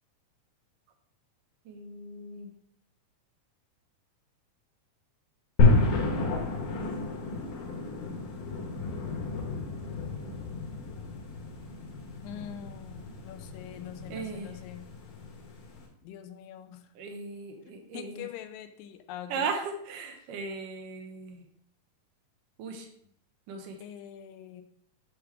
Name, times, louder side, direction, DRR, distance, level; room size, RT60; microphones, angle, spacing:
voice 1, 1.7-2.5 14.1-14.6 17.0-18.3 19.3-21.4 22.6-22.9 23.5-23.8, right 4 dB, 80° right, 4 dB, 2.4 m, -37 dB
sound 1, 5.6-15.9, left 3 dB, 70° left, 2.8 m, -30 dB
voice 2, 12.2-14.9 16.0-16.8 17.7-19.5 23.8-24.6, left 10 dB, 85° left, 8 dB, 2.3 m, -44 dB
7.2 x 3.2 x 5.9 m, 0.68 s
omnidirectional pair, 3.9 m